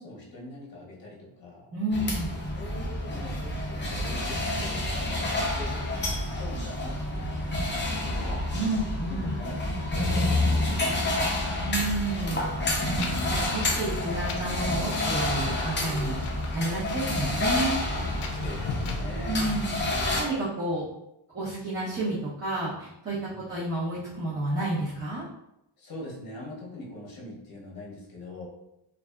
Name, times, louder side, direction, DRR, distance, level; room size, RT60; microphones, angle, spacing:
voice 1, 0.0-1.7 2.5-7.4 7.8-8.5 9.1-11.6 18.3-19.4 23.3-23.6 25.8-28.5, left 1 dB, 45° left, -3 dB, 0.8 m, -43 dB
voice 2, 1.7-2.3 8.5-9.3 11.5-12.5 13.3-16.2 16.5-17.7 19.3-19.8 20.2-20.8 21.3-25.2, right 2 dB, 25° right, -11 dB, 0.7 m, -30 dB
sound 1, 1.9-20.2, left 1 dB, 25° left, 0.5 m, -29 dB
Wind, 12.6-19.0, left 4 dB, 75° left, 0.5 m, -39 dB
2.6 x 2.4 x 2.3 m, 0.85 s
wide cardioid pair, 135°, 49 cm